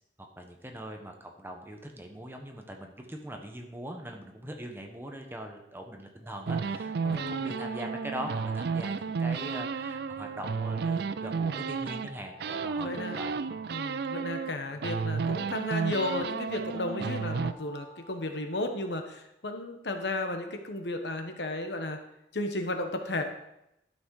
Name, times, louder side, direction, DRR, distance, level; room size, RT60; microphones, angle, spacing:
voice 1, 0.2-13.6, right 1 dB, 15° right, 3 dB, 1.1 m, -42 dB
Alarm, 6.2-9.5 10.7-14.5 15.7-19.0, equal, 45° right, 2.4 m, -52 dB
sound 1, 6.5-12.1 12.4-14.5 14.8-17.5, right 5 dB, 65° right, 0.4 m, -32 dB
voice 2, 7.0-7.6 12.8-13.2 13.7-22.0 22.3-23.2, left 2 dB, 70° left, 6 dB, 1.2 m, -34 dB
12.0 x 6.2 x 4.8 m, 0.84 s
head